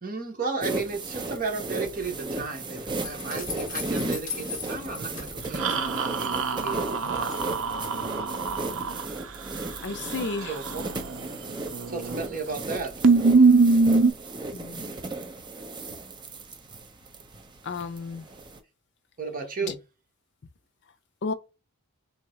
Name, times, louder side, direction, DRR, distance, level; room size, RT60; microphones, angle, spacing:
voice 1, 0.0-7.3 10.5-10.8 11.9-12.9 19.2-19.8, right 4 dB, 40° right, 1.2 m, -34 dB
sound 1, 0.6-18.6, right 2 dB, 20° right, 0.6 m, -35 dB
sound 2, 3.0-6.4 6.7-7.4, left 6 dB, 35° left, 1.2 m, -38 dB
sound 3, 5.6-9.0 11.7-12.2 12.5-12.6 13.0-14.1, right 4 dB, 60° right, 0.6 m, -22 dB
voice 2, 9.8-10.6 14.5-14.8 17.6-18.2 21.2-21.3, left 3 dB, 55° left, 0.5 m, -33 dB
3.8 x 2.8 x 4.3 m
head